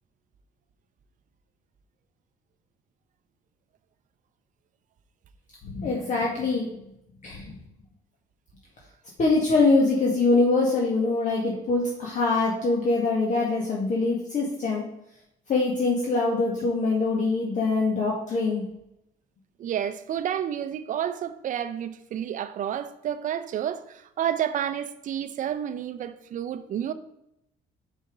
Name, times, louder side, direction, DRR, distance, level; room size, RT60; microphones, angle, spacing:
voice 1, 5.7-6.7 7.2-7.5 9.2-14.8 15.5-18.6, left 3 dB, 45° left, 1.8 m, -23 dB
voice 2, 19.6-26.9, right 9 dB, 50° right, 0.6 m, -30 dB
5.7 x 5.5 x 4.9 m
cardioid pair, 110°, 17 cm